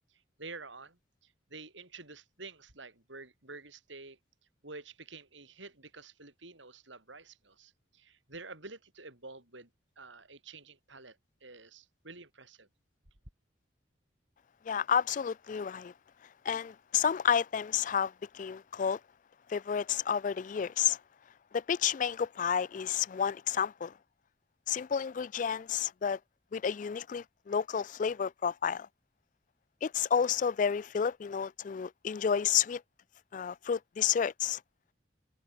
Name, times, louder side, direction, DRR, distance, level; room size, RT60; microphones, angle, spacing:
voice 1, 0.1-4.2 4.6-9.7 10.0-12.7, right 3 dB, 75° right, 6.4 m, -49 dB
voice 2, 14.7-15.9 16.5-19.0 19.5-21.0 21.5-23.9 24.7-26.2 26.5-28.9 29.8-32.8 33.3-34.6, left 7 dB, 40° left, 0.3 m, -30 dB
head